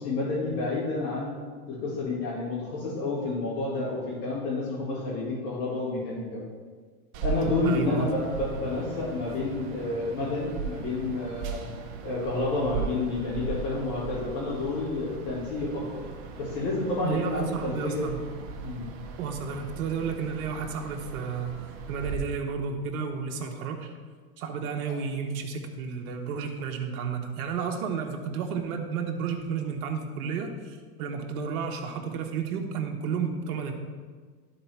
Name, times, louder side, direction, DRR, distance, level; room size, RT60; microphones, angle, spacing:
voice 1, 0.0-1.3 1.7-6.4 7.2-11.6 12.0-16.0 16.4-18.1 18.6-18.9, left 2 dB, 75° left, -8 dB, 2.5 m, -29 dB
sound 1, 7.1-22.2, right 5 dB, 55° right, 1.1 m, -38 dB
voice 2, 7.6-8.1 17.0-18.2 19.2-21.6 21.9-23.9 24.4-33.7, right 6 dB, 75° right, 3 dB, 1.2 m, -32 dB
11.5 x 4.1 x 4.6 m, 1.5 s
hypercardioid pair, 110°, 44 cm